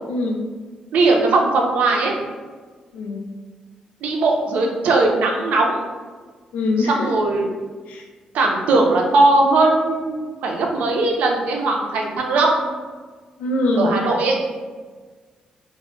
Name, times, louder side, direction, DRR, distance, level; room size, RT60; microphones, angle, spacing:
voice 1, 0.1-0.5 2.9-3.2 6.5-7.1 7.9-8.0 13.4-14.0, left 2 dB, 85° left, 1 dB, 0.4 m, -22 dB
voice 2, 0.9-2.1 4.0-5.8 6.8-7.5 8.3-12.7 13.8-14.3, right 2 dB, 80° right, 0 dB, 0.4 m, -19 dB
2.2 x 2.0 x 3.6 m, 1.4 s
cardioid pair, 135°, 2 cm